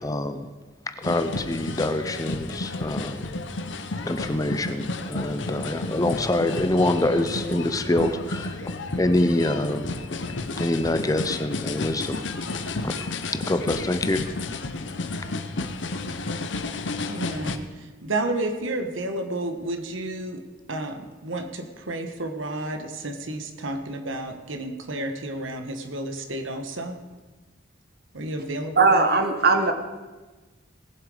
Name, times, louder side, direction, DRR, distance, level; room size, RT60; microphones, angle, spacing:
voice 1, 0.0-0.5 1.0-3.2 4.0-9.9 10.6-12.2 12.8-14.2, left 1 dB, 20° left, 9 dB, 0.6 m, -25 dB
sound 1, 1.0-17.6, left 2 dB, 70° left, 0.8 m, -32 dB
voice 2, 17.1-17.6 18.0-20.4 20.7-27.0 28.1-29.0, right 2 dB, 80° right, 5 dB, 1.4 m, -31 dB
voice 3, 28.8-29.7, right 3 dB, 50° right, 6 dB, 1.3 m, -19 dB
19.0 x 7.6 x 5.0 m, 1.2 s
head